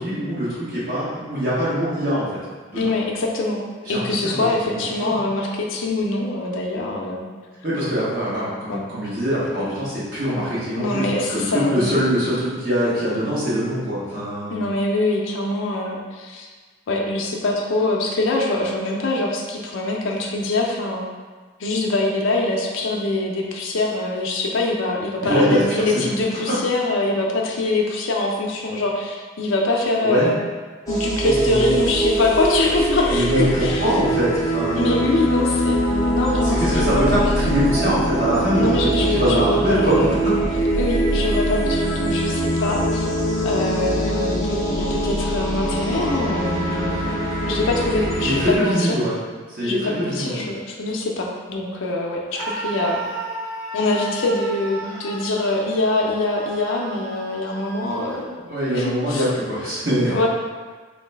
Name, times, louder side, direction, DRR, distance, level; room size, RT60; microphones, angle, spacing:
voice 1, 0.0-2.3 2.7-2.9 3.8-5.2 7.6-14.6 25.2-25.9 30.0-30.3 31.2-31.7 33.1-35.1 36.4-40.3 47.9-49.2 49.5-50.5 58.4-60.1, equal, 45° right, -9 dB, 1.3 m, -23 dB
voice 2, 2.8-3.6 3.9-7.3 8.7-8.9 10.8-12.0 14.5-16.5 16.9-21.0 21.6-30.4 30.9-33.8 34.8-37.2 38.6-40.3 40.8-43.1 43.4-47.1 47.5-48.9 49.6-53.0 53.7-58.3 58.7-59.2 60.1-60.3, left 2 dB, 75° left, -1 dB, 0.5 m, -24 dB
sound 1, 30.9-48.5, right 1 dB, 15° left, 0.6 m, -23 dB
Screaming, 52.3-58.3, right 2 dB, 60° right, 0.6 m, -33 dB
3.9 x 2.6 x 3.3 m, 1.4 s
head